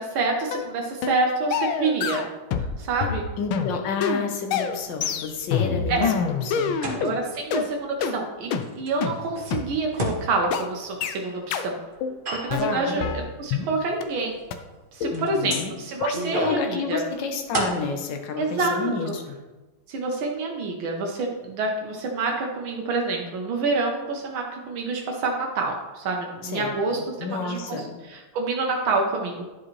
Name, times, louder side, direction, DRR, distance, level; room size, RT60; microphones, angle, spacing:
voice 1, 0.0-2.3 2.8-3.2 5.9-6.1 7.0-11.8 12.3-14.4 14.9-17.0 18.4-19.1 19.9-29.5, right 3 dB, 85° right, 1 dB, 1.7 m, -27 dB
sound 1, 0.5-0.7 1.0-1.2 1.5-2.7 3.0-7.1 7.5-7.6 8.0-8.1 8.5-8.6 9.0-9.1 9.5-9.6 10.0-10.1 10.5-10.6 11.0-11.2 11.5-11.7 12.0-12.2 12.5-13.7 14.0-14.1 14.5-14.6 15.0-15.2 15.5-15.7 16.0-16.2, left 7 dB, 85° left, 1.4 m, -26 dB
voice 2, 3.4-7.2 12.5-13.1 15.1-15.7 16.3-19.3 26.4-27.9, left 5 dB, 70° left, 5 dB, 1.6 m, -30 dB
sound 2, 4.6-7.8 8.2-8.3 8.6-11.4 12.0-12.7 13.3-13.4 14.3-14.4 14.7-14.9 15.1-16.8 17.0-17.8, right 2 dB, 35° right, 0.9 m, -33 dB
11.5 x 4.8 x 3.1 m, 1.2 s
omnidirectional pair, 2.2 m